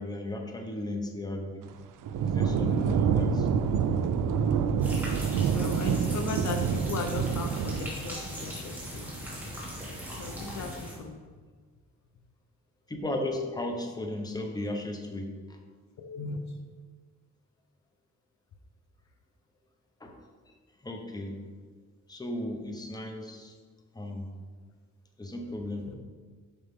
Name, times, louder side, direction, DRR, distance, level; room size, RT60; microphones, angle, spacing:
voice 1, 0.0-1.6 2.2-3.5 3.7-3.9 12.9-15.6 20.0-20.1 20.8-21.4 22.1-23.6 23.9-24.3 25.2-25.9, left 1 dB, 10° left, 3 dB, 0.9 m, -35 dB
sound 1, 2.0-7.9, right 6 dB, 80° right, 0.5 m, -27 dB
voice 2, 2.7-3.0 5.5-9.1 10.2-11.2 16.0-16.4 25.9-26.0, left 4 dB, 65° left, 5 dB, 0.7 m, -37 dB
sound 2, 4.8-11.0, equal, 5° right, 2.0 m, -39 dB
7.3 x 5.5 x 3.6 m, 1.5 s
cardioid pair, 105°, 31 cm